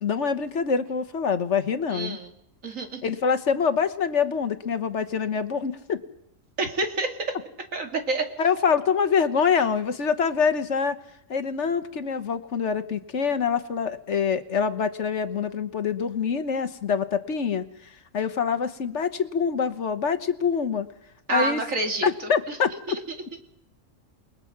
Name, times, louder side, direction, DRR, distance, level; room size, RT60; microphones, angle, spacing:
voice 1, 0.0-2.2 3.0-6.0 8.4-11.0 11.3-17.6 18.1-20.9 21.3-21.6 22.0-22.7, left 6 dB, 65° left, 11 dB, 1.5 m, -25 dB
voice 2, 1.9-2.3 2.6-3.0 6.6-7.2 7.7-8.3 21.3-22.1 22.5-22.6, right 2 dB, 80° right, 4 dB, 2.7 m, -28 dB
29.0 x 20.0 x 5.9 m, 0.75 s
omnidirectional pair, 1.4 m